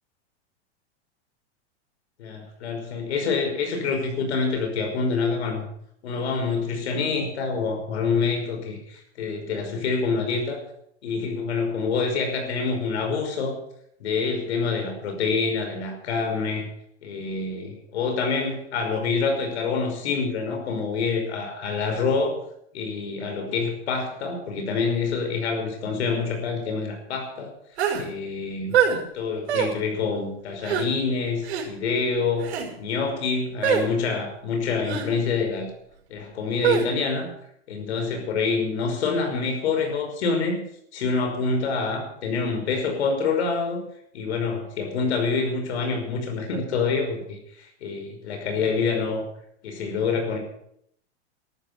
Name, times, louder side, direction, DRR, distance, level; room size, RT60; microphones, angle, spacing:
voice 1, 2.2-5.7 6.0-10.6 11.0-13.6 14.0-16.7 17.0-22.4 22.7-27.5 28.0-28.8 29.1-32.5 32.8-35.7 36.1-37.3 37.7-40.6 40.9-43.8 44.1-47.2 47.6-49.2 49.6-50.4, left 4 dB, 70° left, 4 dB, 5.6 m, -26 dB
sound 1, 27.8-28.1 28.7-29.0 29.5-29.7 30.6-30.9 31.4-31.7 32.4-32.7 33.6-33.9 34.9-35.1 36.6-36.9, right 8 dB, 70° right, 5.8 m, -23 dB
13.5 x 13.0 x 6.7 m, 0.70 s
supercardioid pair, 175°, 34 cm